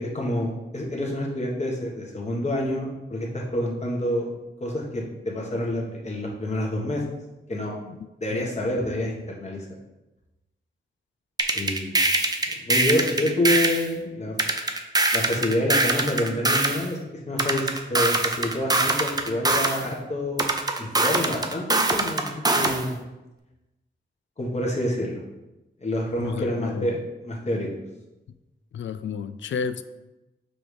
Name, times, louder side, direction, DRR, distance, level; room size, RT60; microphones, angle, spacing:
voice 1, 0.0-4.2 4.6-7.0 7.5-7.7 8.2-9.6 11.5-12.0 12.7-14.3 15.1-17.0 17.3-20.4 20.8-22.9 24.4-25.2 25.8-27.7, left 1 dB, 35° left, -2 dB, 1.4 m, -27 dB
sound 1, 11.4-13.9 14.4-16.8 17.4-19.8 20.4-22.8, right 2 dB, 20° right, 0.6 m, -22 dB
voice 2, 26.2-27.0 28.7-29.8, left 6 dB, 85° left, 12 dB, 0.4 m, -31 dB
6.0 x 3.4 x 5.0 m, 1.0 s
wide cardioid pair, 115°, 19 cm